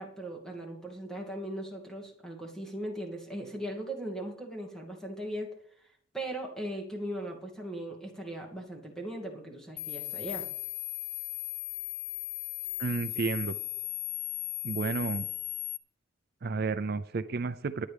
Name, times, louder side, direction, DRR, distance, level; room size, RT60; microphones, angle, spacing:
voice 1, 0.0-5.5 6.1-10.5, right 1 dB, 5° left, 0 dB, 2.4 m, -38 dB
sound 1, 9.8-15.8, left 16 dB, 75° left, 0.6 m, -37 dB
voice 2, 12.8-13.5 14.6-15.3 16.4-17.9, right 4 dB, 55° right, 12 dB, 0.5 m, -31 dB
19.5 x 9.4 x 3.4 m, 0.64 s
head